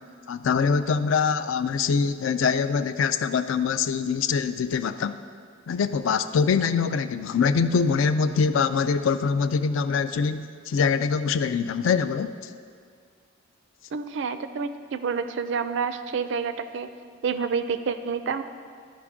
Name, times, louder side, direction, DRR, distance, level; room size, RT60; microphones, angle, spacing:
voice 1, 0.3-5.2 5.7-12.4, left 5 dB, 65° left, 11 dB, 0.3 m, -24 dB
voice 2, 13.9-16.9 17.2-18.4, right 5 dB, 60° right, 10 dB, 0.4 m, -28 dB
12.5 x 5.1 x 3.6 m, 2.1 s
head